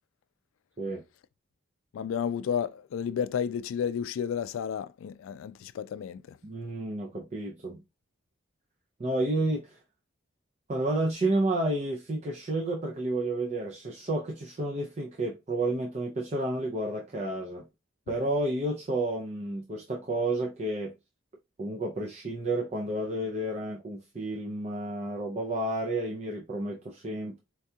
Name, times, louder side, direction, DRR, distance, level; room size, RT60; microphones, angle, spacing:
voice 1, 1.9-6.4, left 8 dB, 85° left, 0.3 m, -32 dB
voice 2, 6.4-7.8 9.0-9.8 10.7-17.7 18.1-20.9 21.6-27.4, right 1 dB, 35° right, 0.5 m, -31 dB
4.5 x 2.3 x 2.6 m
head